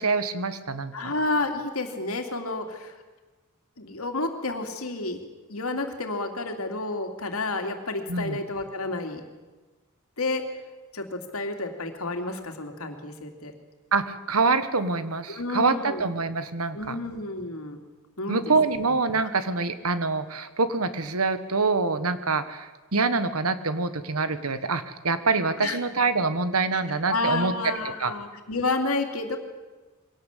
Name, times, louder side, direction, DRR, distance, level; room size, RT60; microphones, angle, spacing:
voice 1, 0.0-1.1 8.1-8.4 13.9-17.0 18.3-27.5 28.0-28.1, right 4 dB, 85° right, 12 dB, 1.5 m, -25 dB
voice 2, 0.9-2.9 3.8-5.2 5.5-9.2 10.2-10.4 10.9-13.5 15.3-16.0 16.7-17.8 18.2-18.5 19.2-19.3 25.6-25.8 27.1-29.4, left 2 dB, 75° left, 5 dB, 2.8 m, -30 dB
22.5 x 17.5 x 8.4 m, 1.2 s
head